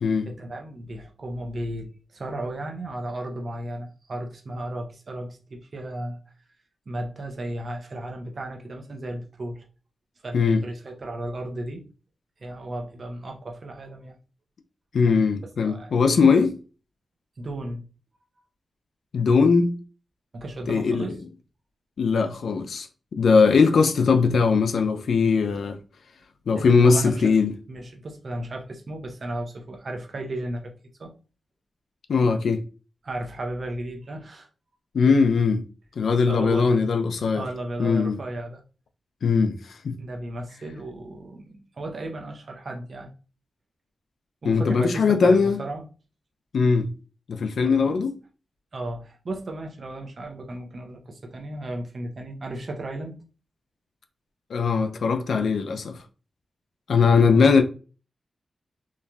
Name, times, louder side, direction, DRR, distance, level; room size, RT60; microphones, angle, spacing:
voice 1, 0.3-6.2 6.9-9.6 10.2-11.8 12.4-14.1 15.6-16.1 17.4-17.8 20.3-21.2 26.5-27.2 27.7-30.7 31.0-31.1 33.0-34.5 36.3-36.8 37.4-38.6 40.0-43.1 44.4-45.8 47.6-48.0 48.7-53.2 57.2-57.6, right 1 dB, 60° right, 0.6 m, -34 dB
voice 2, 14.9-16.6 19.1-19.8 20.7-21.2 22.0-22.9 23.2-25.8 26.5-27.5 32.1-32.6 34.9-35.6 36.0-37.5 37.8-38.2 39.2-40.0 44.4-45.6 46.5-46.9 47.3-48.2 54.5-56.0 56.9-57.6, left 5 dB, 80° left, 0.3 m, -20 dB
3.0 x 2.4 x 2.3 m
cardioid pair, 55°, 0 cm